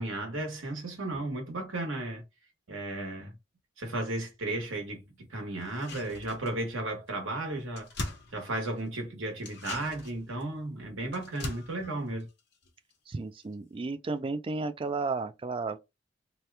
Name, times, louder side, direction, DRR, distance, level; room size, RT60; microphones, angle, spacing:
voice 1, 0.0-2.2 2.7-3.3 3.8-7.9 8.3-12.3, right 2 dB, 90° right, 1.2 m, -34 dB
sound 1, 5.6-6.8 7.1-7.2 7.4-9.0 9.4-13.1 13.4-13.5, left 2 dB, 60° left, 0.9 m, -42 dB
voice 2, 13.1-15.8, right 3 dB, 25° right, 0.3 m, -33 dB
2.8 x 2.2 x 3.3 m
head